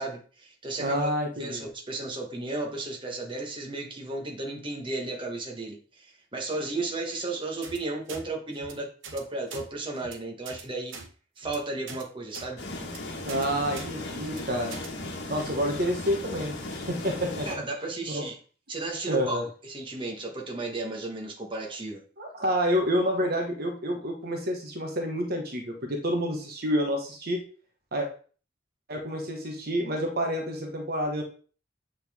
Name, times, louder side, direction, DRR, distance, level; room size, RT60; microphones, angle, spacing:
voice 1, 0.0-1.1 1.4-11.0 11.4-12.6 17.5-18.4 18.7-22.0, right 2 dB, 25° right, 0 dB, 1.4 m, -34 dB
voice 2, 0.8-1.7 13.2-14.8 15.3-16.5 16.9-17.6 18.1-18.2 19.1-19.4 22.2-27.4 27.9-28.1 28.9-31.2, equal, 55° right, 2 dB, 1.3 m, -28 dB
sound 1, 7.6-7.8 8.1-8.2 8.5-8.7 9.0-9.2 9.5-9.6 10.0-10.1 10.5-10.6 10.9-11.1 11.4-11.6 11.9-12.0 12.3-12.5 12.8-13.0 13.3-13.5 13.8-13.9 14.2-14.4 14.7-14.9, right 4 dB, 80° right, 1.1 m, -42 dB
sound 2, 12.6-17.5, left 2 dB, 60° left, 1.6 m, -37 dB
8.3 x 4.1 x 3.6 m, 0.40 s
head